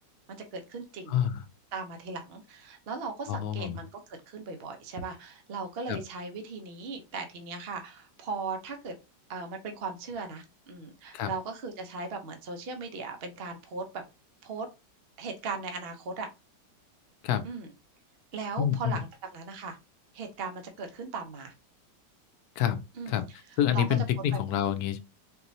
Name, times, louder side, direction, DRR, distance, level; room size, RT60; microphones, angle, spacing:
voice 1, 0.3-1.2 1.7-8.9 9.3-14.0 14.4-14.7 15.2-16.3 17.4-17.7 18.3-19.1 19.3-19.8 20.1-21.5 23.0-23.2 23.7-23.8 24.3-24.4, right 4 dB, 55° right, 0.6 m, -38 dB
voice 2, 1.1-1.4 3.3-3.8 5.9-6.0 11.1-11.3 17.2-17.4 18.6-19.0 22.6-23.2 23.6-25.0, left 10 dB, 70° left, 1.0 m, -27 dB
4.4 x 3.0 x 2.6 m
omnidirectional pair, 1.9 m